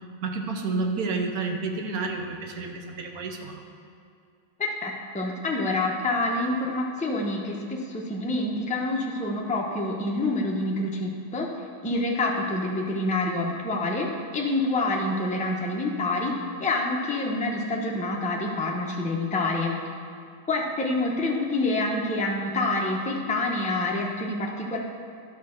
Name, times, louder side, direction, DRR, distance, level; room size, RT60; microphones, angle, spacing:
voice 1, 0.2-3.6, right 3 dB, 55° right, 3 dB, 1.2 m, -30 dB
voice 2, 4.6-11.5 11.8-14.1 14.3-16.3 16.6-19.7 20.5-24.8, left 2 dB, 10° left, -1 dB, 0.3 m, -27 dB
12.0 x 5.0 x 6.5 m, 2.4 s
omnidirectional pair, 2.2 m